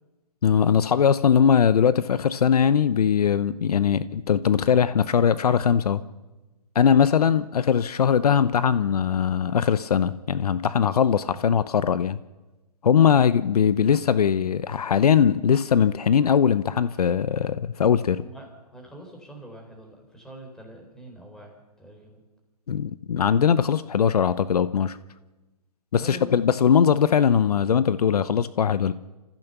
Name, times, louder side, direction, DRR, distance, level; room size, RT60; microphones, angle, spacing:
voice 1, 0.4-6.0 6.7-12.2 12.8-18.2 22.7-25.0 25.9-28.9, left 7 dB, 70° left, 15 dB, 0.9 m, -20 dB
voice 2, 18.2-22.2 25.9-26.4, right 1 dB, 5° left, 1 dB, 4.0 m, -44 dB
28.5 x 15.0 x 6.8 m, 1.1 s
hypercardioid pair, 150°, 20 cm